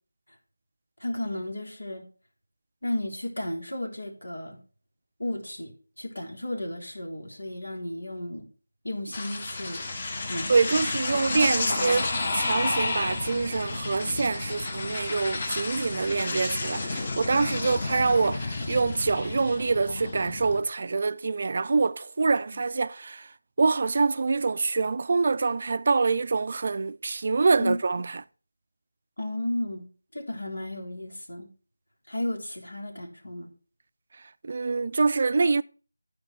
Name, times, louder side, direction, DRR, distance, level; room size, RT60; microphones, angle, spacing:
voice 1, 1.0-2.0 2.8-4.6 5.2-8.5 8.8-9.9 10.3-11.0 11.6-12.0 17.6-17.7 22.5-22.6 27.6-27.8 29.2-29.9 30.1-31.5 32.1-33.5, left 1 dB, 80° left, 3.4 m, -34 dB
sound 1, 9.1-20.6, left 3 dB, 35° left, 1.4 m, -31 dB
voice 2, 10.5-12.0 12.4-23.3 23.6-28.1 34.4-35.6, right 4 dB, 40° right, 0.4 m, -25 dB
12.5 x 5.3 x 4.5 m
figure-of-eight pair, 165°, 0 cm